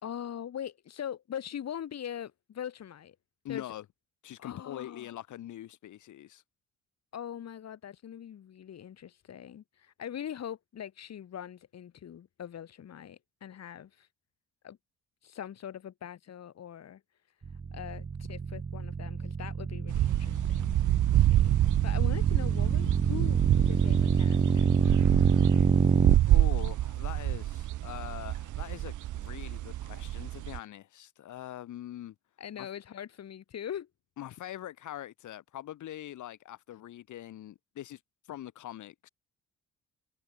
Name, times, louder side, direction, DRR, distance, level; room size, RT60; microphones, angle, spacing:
voice 1, 0.0-3.2 3.5-3.6 4.4-5.1 7.1-14.1 14.6-14.8 15.2-17.0 17.7-20.7 21.1-21.5 21.8-25.3 32.4-33.9, left 9 dB, 60° left, 3.1 m, -42 dB
voice 2, 3.4-3.8 4.2-6.4 26.3-32.1 32.5-32.7 34.2-38.0 38.3-39.1, left 12 dB, 75° left, 3.4 m, -43 dB
sound 1, 17.4-26.2, right 5 dB, 30° right, 1.3 m, -27 dB
sound 2, 19.9-30.6, right 14 dB, 80° right, 1.9 m, -27 dB
cardioid pair, 90°, 30 cm